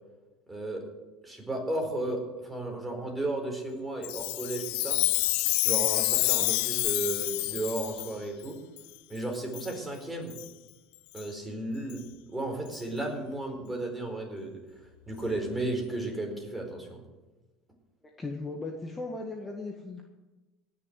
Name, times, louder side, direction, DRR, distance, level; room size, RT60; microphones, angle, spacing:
voice 1, 0.5-0.8 1.2-5.0 5.6-8.6 9.1-10.4 11.1-12.0 12.3-14.6 15.1-17.0, right 2 dB, 10° right, 2 dB, 4.5 m, -34 dB
Chime, 4.0-8.1 8.8-8.9 9.5-9.7 10.3-10.5 11.2-11.3 11.9-12.0 12.7-12.8, left 23 dB, 80° left, 0.4 m, -28 dB
voice 2, 18.2-20.1, left 3 dB, 15° left, 1 dB, 1.8 m, -37 dB
18.0 x 7.0 x 9.3 m, 1.1 s
supercardioid pair, 125°, 0 cm